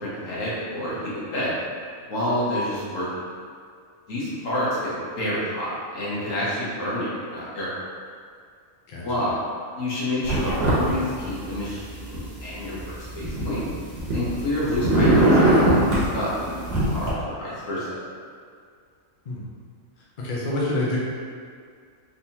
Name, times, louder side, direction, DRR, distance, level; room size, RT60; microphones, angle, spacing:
voice 1, 0.0-1.5 2.1-3.1 4.1-7.7 9.0-9.4 9.7-13.6 14.1-16.7 16.9-17.9, left 1 dB, 70° left, -8 dB, 1.4 m, -28 dB
sound 1, 10.2-10.9 11.2-12.2 12.8-14.4 14.7-16.1 16.7-17.1, right 1 dB, 50° right, 1.0 m, -20 dB
voice 2, 20.2-21.0, left 2 dB, 50° left, -6 dB, 0.7 m, -26 dB
3.8 x 2.8 x 2.8 m, 2.1 s
omnidirectional pair, 1.5 m